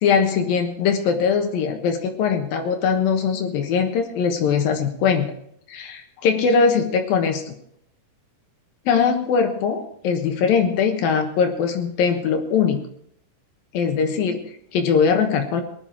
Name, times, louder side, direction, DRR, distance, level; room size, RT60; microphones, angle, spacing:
voice 1, 0.0-5.3 5.7-7.6 8.9-12.8 13.7-15.6, left 6 dB, 65° left, 5 dB, 2.5 m, -21 dB
19.0 x 12.0 x 4.5 m, 0.69 s
omnidirectional pair, 5.6 m